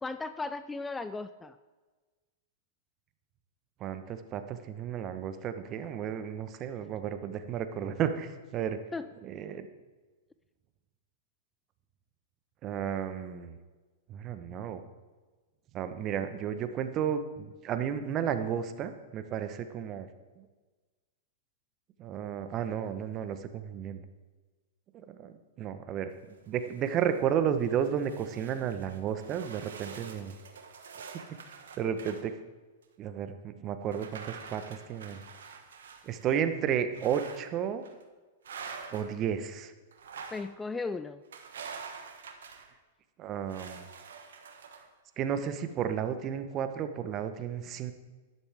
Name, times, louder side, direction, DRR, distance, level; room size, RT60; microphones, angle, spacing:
voice 1, 0.0-1.6 8.9-9.1 40.3-41.2, left 3 dB, 10° left, 12 dB, 0.4 m, -36 dB
voice 2, 3.8-8.8 9.2-9.7 12.6-13.6 14.1-14.8 15.7-20.1 20.4-20.5 22.0-24.0 24.9-26.1 26.5-30.3 31.8-32.3 33.0-35.2 36.0-37.8 38.9-39.7 43.2-43.9 45.2-47.9, right 8 dB, 35° right, 10 dB, 1.0 m, -33 dB
sound 1, 26.3-27.2 27.6-32.2 32.8-32.9 33.9-36.4 36.9-37.5 37.8-38.0 38.4-39.2 39.9-40.5 41.3-42.7 43.5-44.9, right 6 dB, 75° right, 1.3 m, -46 dB
12.0 x 10.5 x 3.5 m, 1.3 s
hypercardioid pair, 110°, 0 cm